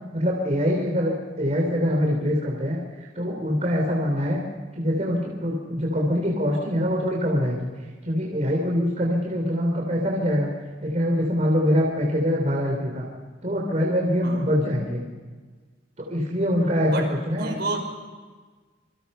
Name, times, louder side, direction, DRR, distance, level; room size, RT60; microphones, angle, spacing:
voice 1, 0.1-2.8 3.2-4.4 4.7-7.7 8.0-10.5 10.8-13.0 13.4-15.0 16.0-17.6, equal, 40° right, -1 dB, 3.7 m, -24 dB
voice 2, 17.4-17.8, right 2 dB, 65° right, 2 dB, 5.8 m, -29 dB
28.0 x 24.5 x 5.7 m, 1.4 s
head